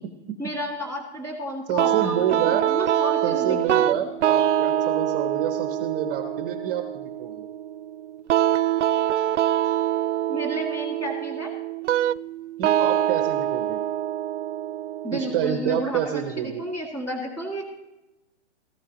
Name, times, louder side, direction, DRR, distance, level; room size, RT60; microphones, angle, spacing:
voice 1, 0.4-4.0 10.3-11.5 15.0-17.6, equal, 10° left, 1 dB, 2.0 m, -32 dB
voice 2, 1.7-2.6 3.2-7.5 12.6-13.8 15.1-16.6, right 9 dB, 20° right, 7 dB, 0.6 m, -28 dB
sound 1, 1.8-16.7, right 11 dB, 90° right, 0.5 m, -25 dB
16.0 x 14.5 x 2.9 m, 0.95 s
hypercardioid pair, 155°, 35 cm